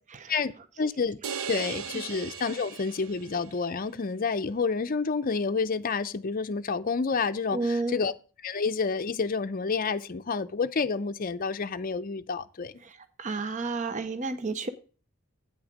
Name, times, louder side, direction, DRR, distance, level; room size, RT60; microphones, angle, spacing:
voice 1, 0.3-1.2 1.5-8.1 8.4-12.7, left 4 dB, 40° left, 0.5 m, -29 dB
sound 1, 1.2-3.6, right 7 dB, 85° right, 0.6 m, -38 dB
voice 2, 7.5-8.0 12.8-14.7, right 3 dB, 35° right, 0.6 m, -31 dB
8.8 x 6.3 x 5.0 m
head